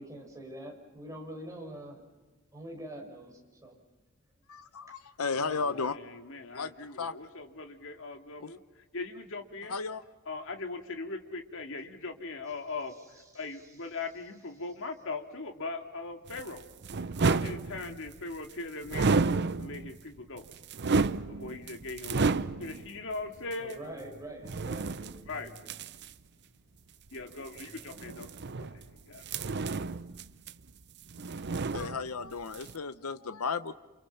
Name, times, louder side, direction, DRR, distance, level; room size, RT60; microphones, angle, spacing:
voice 1, 0.0-2.0 2.5-3.8 5.4-5.6 23.6-25.5, right 1 dB, 15° right, 1 dB, 6.1 m, -44 dB
voice 2, 4.5-6.0 6.5-6.7 7.0-7.1 8.4-8.5 9.7-10.0 31.7-33.7, left 4 dB, 90° left, 12 dB, 0.8 m, -34 dB
voice 3, 5.6-9.8 10.3-16.7 17.2-19.2 19.6-20.5 21.3-23.8 25.3-25.9 27.1-29.2, left 3 dB, 65° left, 5 dB, 2.3 m, -40 dB
sound 1, 16.3-18.2 18.9-20.0 20.4-22.9 23.5-23.6 24.4-26.1 27.5-28.9 29.2-30.8 31.1-32.3 32.5-32.7, right 4 dB, 55° right, 0.7 m, -31 dB
28.5 x 28.5 x 5.8 m, 1.2 s
head